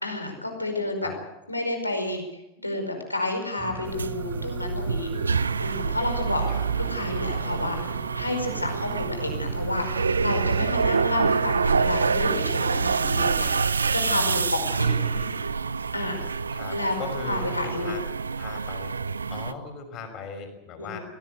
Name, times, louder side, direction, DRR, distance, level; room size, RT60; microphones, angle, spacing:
voice 1, 0.0-1.1 1.5-2.2 2.6-5.1 5.6-6.4 6.8-13.5 13.9-15.0 15.9-16.3 16.7-17.0 17.2-17.9 20.8-21.0, left 2 dB, 85° left, 5 dB, 5.1 m, -30 dB
sound 1, 3.6-11.0, right 12 dB, 35° right, 1.1 m, -40 dB
sound 2, 3.9-19.5, right 5 dB, 75° right, 0.7 m, -27 dB
voice 2, 7.2-7.6 15.0-15.4 16.5-18.0 18.4-18.9 19.3-21.0, left 4 dB, 35° left, 6 dB, 6.0 m, -38 dB
23.5 x 17.5 x 8.1 m, 0.97 s
figure-of-eight pair, 90°, 0 cm